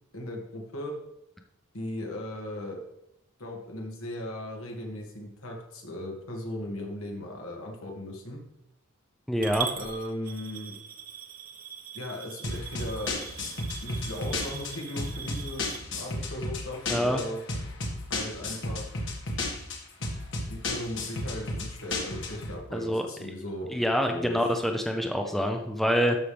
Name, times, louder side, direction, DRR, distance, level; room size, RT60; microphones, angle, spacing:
voice 1, 0.1-0.9 1.7-2.8 3.4-8.4 9.8-10.8 11.9-13.2 13.8-15.7 16.0-17.4 18.1-18.9 20.5-23.8 24.1-24.5, left 1 dB, 80° left, 0 dB, 2.1 m, -37 dB
voice 2, 9.3-9.7 16.9-17.2 22.7-23.0 23.7-26.2, equal, ahead, 3 dB, 0.6 m, -26 dB
Coin (dropping) / Glass, 9.4-15.8, right 8 dB, 40° right, 0.9 m, -41 dB
sound 1, 12.4-22.5, left 2 dB, 60° left, 1.7 m, -33 dB
13.0 x 5.6 x 3.4 m, 0.78 s
head